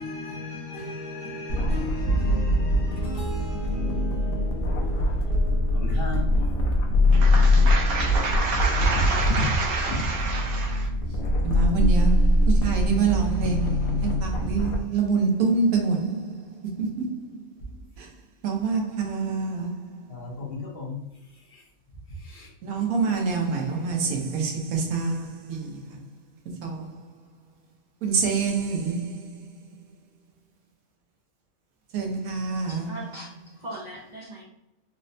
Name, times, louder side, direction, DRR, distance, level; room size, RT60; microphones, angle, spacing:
voice 1, 0.0-6.2 9.8-9.9 20.1-21.0 21.5-21.6 22.2-22.5, left 2 dB, 50° left, 0.9 m, -36 dB
sound 1, 1.5-14.8, left 1 dB, 85° left, 1.2 m, -23 dB
voice 2, 7.1-10.9 11.4-17.4 18.0-18.1 18.4-20.4 22.6-26.0 26.6-27.0 28.0-29.8 31.9-32.9, right 4 dB, 85° right, 1.2 m, -27 dB
voice 3, 32.6-34.4, right 1 dB, 50° right, 0.5 m, -40 dB
3.8 x 2.1 x 2.6 m
omnidirectional pair, 1.5 m